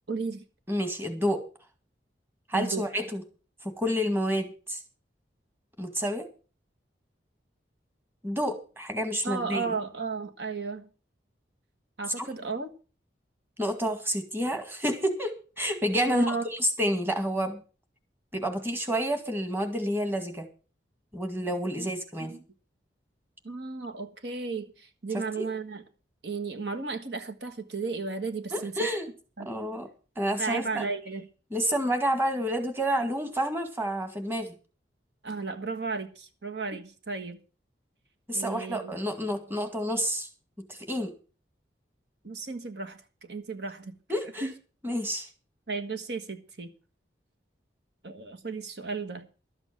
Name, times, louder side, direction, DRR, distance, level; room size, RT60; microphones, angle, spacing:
voice 1, 0.1-0.4 2.5-2.9 9.2-10.9 12.0-12.7 16.1-16.5 21.8-21.9 22.2-22.4 23.4-25.8 26.2-28.7 29.4-29.5 30.4-31.3 35.2-37.4 38.3-38.9 42.2-43.9 44.4-44.5 45.7-46.7 48.0-49.3, right 4 dB, 70° right, 1.5 m, -34 dB
voice 2, 0.7-1.4 2.5-3.2 3.6-4.8 5.8-6.3 8.2-9.7 12.2-12.3 13.6-17.6 18.3-20.5 21.1-22.3 28.5-29.1 29.5-29.9 30.2-30.9 31.5-34.6 38.3-40.3 40.7-41.1 44.1-44.5 44.8-45.3, equal, 10° right, 2.0 m, -29 dB
12.5 x 8.0 x 7.5 m
head